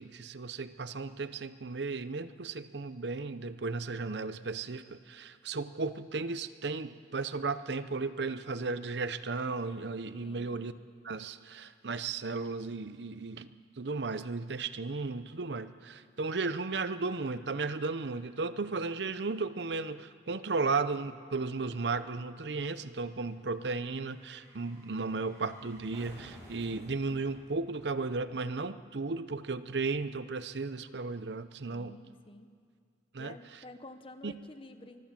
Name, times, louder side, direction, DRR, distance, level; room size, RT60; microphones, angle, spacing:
voice 1, 0.0-10.7 11.0-13.5 13.8-31.9 33.1-33.3 34.2-34.3, right 3 dB, 75° right, 13 dB, 0.7 m, -35 dB
voice 2, 10.2-10.5 31.6-32.5 33.2-35.0, left 2 dB, 30° left, 9 dB, 1.0 m, -50 dB
sound 1, 19.5-28.7 28.9-29.0, equal, 20° right, 4.7 m, -57 dB
23.5 x 14.5 x 7.5 m, 2.1 s
head